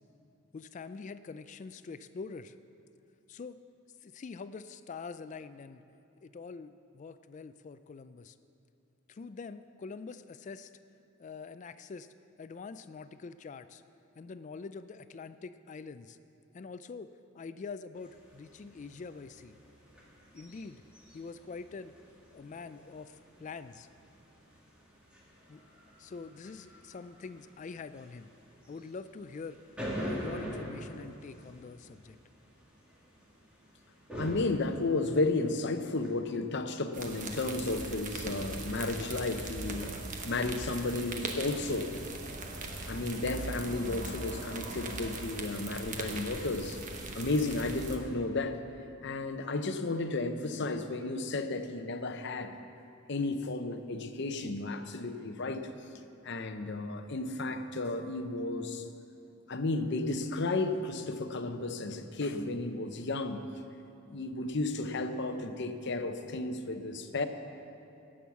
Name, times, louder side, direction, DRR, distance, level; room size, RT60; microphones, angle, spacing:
voice 1, 0.5-2.5 3.3-3.6 4.0-5.8 6.2-8.4 9.1-10.7 11.2-12.1 12.4-13.8 14.2-16.2 16.5-17.1 17.3-19.6 20.3-20.8 21.1-21.9 22.3-23.9 25.5-25.6 26.0-28.3 28.7-29.6 29.9-32.2, left 4 dB, 35° left, 13 dB, 0.3 m, -45 dB
sound 1, 18.0-36.1, equal, 5° right, 2.2 m, -45 dB
voice 2, 34.1-39.9 40.2-41.9 42.9-46.8 47.1-48.6 49.0-52.6 53.1-55.7 56.2-58.8 59.5-63.4 64.1-67.2, left 2 dB, 55° left, 8 dB, 0.7 m, -33 dB
sound 2, 36.9-48.0, right 2 dB, 35° right, 1.1 m, -40 dB
17.0 x 6.3 x 7.1 m, 2.7 s
head